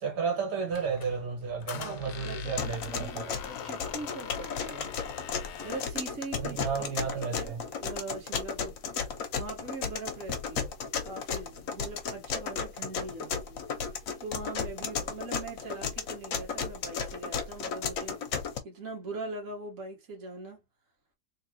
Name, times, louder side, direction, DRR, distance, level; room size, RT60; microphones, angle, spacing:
voice 1, 0.0-3.3 6.4-7.6, right 6 dB, 80° right, 1.7 m, -32 dB
Squeak, 0.7-6.0, left 9 dB, 90° left, 1.3 m, -42 dB
voice 2, 1.7-4.9 5.6-9.0 9.4-10.7 11.0-20.6, right 3 dB, 55° right, 1.8 m, -42 dB
sound 1, 2.6-18.6, left 6 dB, 60° left, 1.1 m, -34 dB
3.5 x 3.0 x 3.0 m
omnidirectional pair, 1.8 m